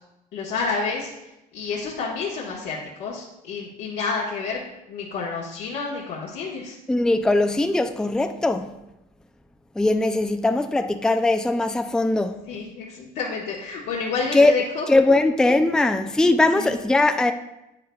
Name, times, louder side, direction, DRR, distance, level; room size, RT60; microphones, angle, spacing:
voice 1, 0.3-1.1 1.5-4.6 4.9-6.8 12.5-14.9 16.5-16.7, left 4 dB, 80° left, -5 dB, 1.4 m, -29 dB
voice 2, 6.9-8.7 9.8-12.5 14.3-14.6 14.9-17.3, left 2 dB, 5° left, 7 dB, 0.4 m, -20 dB
9.4 x 8.9 x 2.3 m, 0.92 s
cardioid pair, 110°, 17 cm